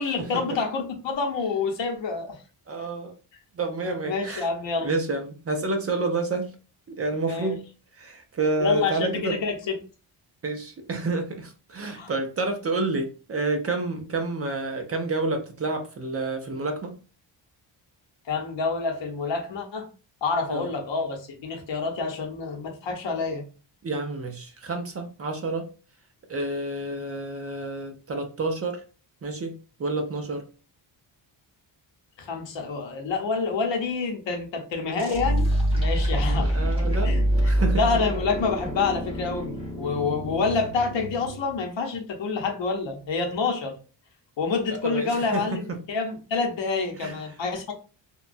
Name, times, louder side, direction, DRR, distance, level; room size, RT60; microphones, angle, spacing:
voice 1, 0.0-2.4 4.0-4.9 7.2-7.6 8.6-9.8 12.0-12.1 18.3-19.9 20.2-23.4 32.2-35.5 35.7-36.5 37.0-43.8 44.4-47.7, left 4 dB, 70° left, 2 dB, 0.8 m, -28 dB
voice 2, 2.7-3.1 3.6-4.5 4.8-6.5 6.9-7.6 8.0-9.4 10.4-16.9 20.5-20.7 23.8-25.7 26.3-28.8 29.2-30.4 36.3-37.9 44.8-45.8 47.0-47.2, right 3 dB, 35° right, 5 dB, 0.4 m, -29 dB
sound 1, 35.0-41.6, equal, 10° right, 0.8 m, -26 dB
2.9 x 2.2 x 2.5 m, 0.36 s
wide cardioid pair, 165°, 46 cm